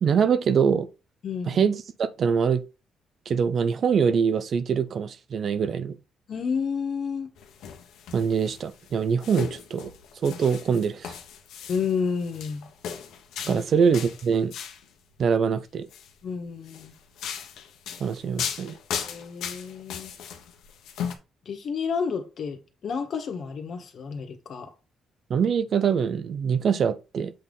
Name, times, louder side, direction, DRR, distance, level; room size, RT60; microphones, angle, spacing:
voice 1, 0.0-0.9 1.5-2.6 3.3-6.0 8.1-11.1 13.4-14.5 15.2-15.9 18.0-18.8 25.3-27.3, right 6 dB, 55° right, 0.7 m, -24 dB
voice 2, 1.2-1.6 6.3-7.3 11.7-12.7 13.4-13.6 16.2-16.9 19.0-20.1 21.4-24.7, left 6 dB, 60° left, 1.6 m, -30 dB
sound 1, 7.4-14.9 15.7-16.1 16.7-21.2, left 8 dB, 85° left, 1.2 m, -37 dB
7.7 x 3.6 x 4.0 m
cardioid pair, 90°, 0 cm